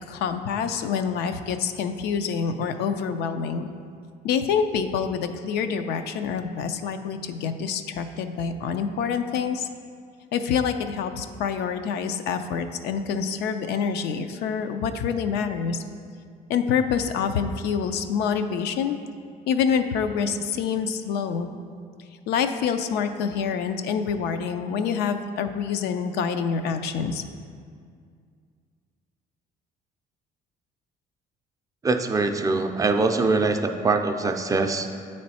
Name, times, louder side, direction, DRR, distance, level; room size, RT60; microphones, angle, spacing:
voice 1, 0.1-3.7 4.2-9.7 10.3-15.8 16.5-19.0 19.5-21.5 22.3-27.2, left 6 dB, 75° left, 8 dB, 0.4 m, -26 dB
voice 2, 31.8-34.9, right 3 dB, 20° right, 6 dB, 0.4 m, -23 dB
8.5 x 3.2 x 4.1 m, 2.1 s
cardioid pair, 110°, 17 cm